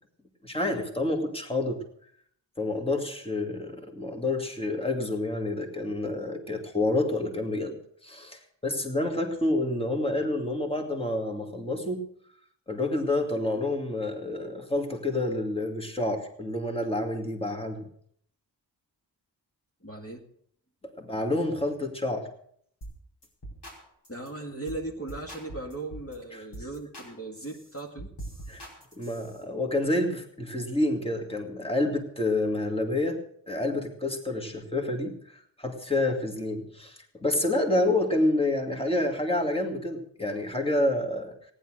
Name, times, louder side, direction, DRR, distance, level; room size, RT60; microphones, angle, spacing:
voice 1, 0.4-1.8 2.6-7.8 8.0-12.0 12.7-17.9 21.0-22.3 28.5-28.6 29.0-33.2 33.5-41.3, left 2 dB, 15° left, 3 dB, 2.5 m, -28 dB
voice 2, 19.8-20.2 24.1-28.1, right 2 dB, 30° left, 0 dB, 2.3 m, -38 dB
sound 1, 22.8-23.0 23.2-23.8 24.0-24.3 24.7-24.8 25.1-26.1 26.5-27.1 27.4-29.4, right 1 dB, 65° left, 5.3 m, -43 dB
15.0 x 10.5 x 6.4 m, 0.64 s
cardioid pair, 55°, 44 cm